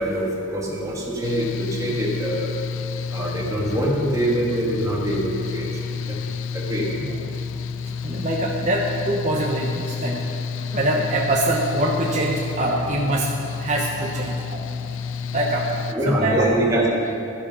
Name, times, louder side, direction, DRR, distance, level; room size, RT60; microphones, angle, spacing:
voice 1, 0.0-2.5 3.1-6.2 6.5-6.9 15.9-17.1, right 1 dB, 15° right, -3 dB, 2.0 m, -24 dB
Mechanical fan, 1.2-15.9, left 6 dB, 65° left, 0.4 m, -30 dB
voice 2, 8.0-10.2 10.7-13.3 13.6-14.6 15.3-15.7 16.0-16.4, right 1 dB, 35° right, -2 dB, 0.9 m, -24 dB
12.5 x 11.0 x 5.6 m, 2.7 s
head